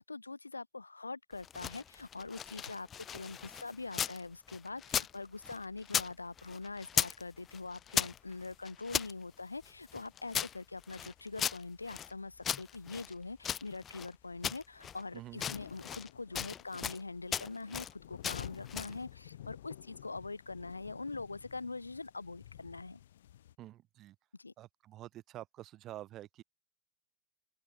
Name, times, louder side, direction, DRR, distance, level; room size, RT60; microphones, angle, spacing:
voice 1, 0.0-23.0 24.4-24.5, left 3 dB, 80° left, 1.3 m, -43 dB
Bag of Scrabble Pieces, 1.3-4.2 4.5-6.1 6.4-7.2 7.5-9.1 9.6-12.1 12.4-14.1 14.4-15.0 15.3-16.1 16.3-17.0 17.3-17.9 18.2-19.0, left 8 dB, 25° left, 0.8 m, -37 dB
sound 1, 7.6-23.6, left 12 dB, 60° left, 2.8 m, -54 dB
voice 2, 15.1-15.4 23.6-24.2 24.6-26.4, right 14 dB, 35° right, 1.9 m, -48 dB
open air
figure-of-eight pair, 90°, 0 cm